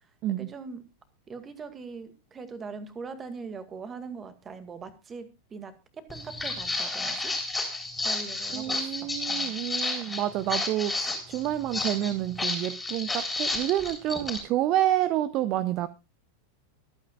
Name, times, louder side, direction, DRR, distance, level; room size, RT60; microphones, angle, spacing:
voice 1, 0.4-0.8 1.3-7.4 8.0-9.6, right 4 dB, 20° right, 11 dB, 2.0 m, -41 dB
Walk footsteps, 6.1-14.4, left 2 dB, 10° left, 3.8 m, -31 dB
voice 2, 8.5-15.9, right 13 dB, 40° right, 17 dB, 0.7 m, -28 dB
24.5 x 9.1 x 2.4 m, 0.27 s
figure-of-eight pair, 90°, 0 cm